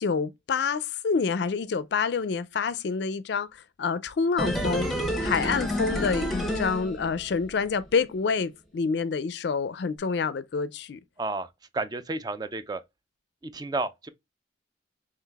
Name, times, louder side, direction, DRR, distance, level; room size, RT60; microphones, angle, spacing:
voice 1, 0.0-4.9 5.2-11.0, left 5 dB, 60° left, 0.4 m, -27 dB
sound 1, 4.4-7.5 7.8-7.9, equal, ahead, 0.9 m, -29 dB
voice 2, 11.7-12.8 13.4-14.1, right 3 dB, 20° right, 0.3 m, -31 dB
5.6 x 3.2 x 2.3 m
head